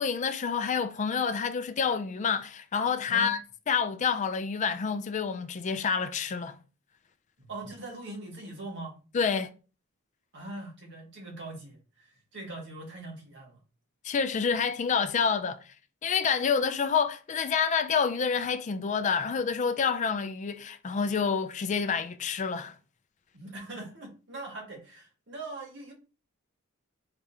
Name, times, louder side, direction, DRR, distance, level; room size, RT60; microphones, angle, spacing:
voice 1, 0.0-3.4 3.7-6.6 9.1-9.5 14.0-15.6 16.0-22.7, left 6 dB, 35° left, 0.4 m, -28 dB
voice 2, 7.4-9.0 10.3-13.6 23.3-25.9, right 2 dB, 55° right, 1.7 m, -41 dB
4.8 x 3.4 x 2.8 m
head